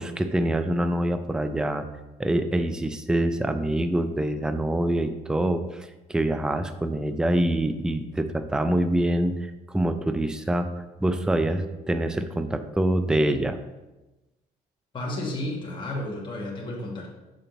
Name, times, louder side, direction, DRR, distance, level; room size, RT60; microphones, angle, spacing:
voice 1, 0.0-1.9 2.2-10.7 11.0-13.6, right 1 dB, 5° right, 9 dB, 0.4 m, -25 dB
voice 2, 14.9-17.1, left 1 dB, 30° left, -2 dB, 1.2 m, -32 dB
6.7 x 5.2 x 3.0 m, 1.1 s
cardioid pair, 110°, 17 cm